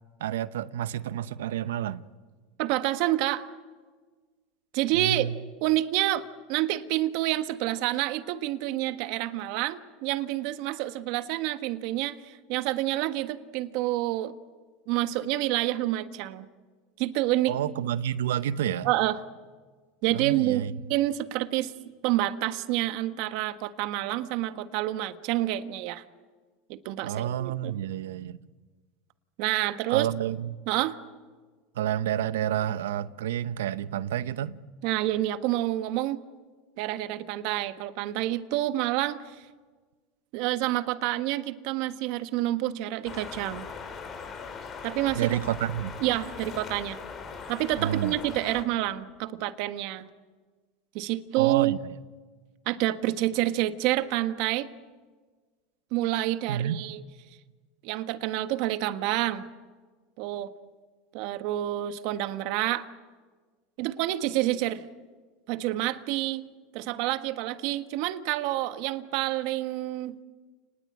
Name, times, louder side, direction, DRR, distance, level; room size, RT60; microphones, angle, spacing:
voice 1, 0.2-2.1 4.9-5.3 17.5-18.9 20.1-20.7 27.0-28.4 29.9-30.6 31.7-34.6 45.1-45.9 47.8-48.1 51.4-52.0 56.5-56.8, right 11 dB, 85° right, 0.8 m, -29 dB
voice 2, 2.6-3.4 4.7-5.3 5.6-14.3 14.9-16.5 17.0-17.5 18.8-19.2 20.0-20.6 20.9-21.7 22.0-26.0 26.7-27.7 29.4-30.1 30.7-31.0 34.8-36.2 36.8-39.4 40.3-43.7 44.8-45.3 46.0-47.0 47.5-50.1 50.9-51.7 52.7-54.7 55.9-57.0 57.8-59.4 60.2-60.5 61.1-62.9 63.8-64.8 65.5-66.5 66.7-70.1, right 15 dB, 65° right, 1.4 m, -28 dB
sound 1, 43.0-48.6, left 5 dB, 40° left, 3.9 m, -40 dB
30.0 x 20.0 x 8.7 m
supercardioid pair, 105°, 0 cm